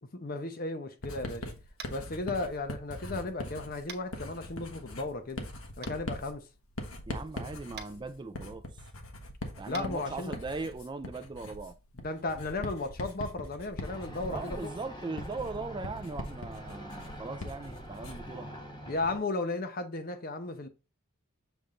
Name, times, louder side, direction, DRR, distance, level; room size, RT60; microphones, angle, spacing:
voice 1, 0.0-1.5 1.9-5.5 5.8-6.5 9.7-10.3 12.0-14.7 18.9-20.7, left 2 dB, 45° left, 0.8 m, -35 dB
Writing, 1.0-18.4, left 1 dB, 85° left, 1.3 m, -42 dB
Tap, 1.8-2.0 3.9-4.0 5.8-5.9 7.7-7.9 9.7-9.9, right 6 dB, 50° right, 1.0 m, -43 dB
voice 2, 7.1-8.7 9.6-11.8 14.3-18.5, right 3 dB, 20° right, 0.3 m, -39 dB
sound 1, 13.8-19.2, equal, 20° left, 1.5 m, -44 dB
7.1 x 3.5 x 3.8 m
head